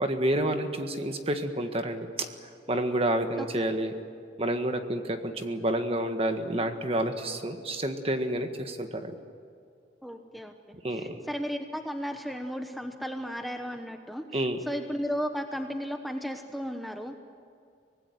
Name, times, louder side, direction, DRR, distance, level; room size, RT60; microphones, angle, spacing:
voice 1, 0.0-2.3 2.7-3.9 4.4-9.1 10.8-11.2 14.3-14.6, right 1 dB, 35° right, 7 dB, 1.6 m, -29 dB
voice 2, 10.0-10.6 10.9-17.1, equal, ahead, 5 dB, 1.0 m, -35 dB
24.5 x 19.0 x 9.4 m, 2.4 s
head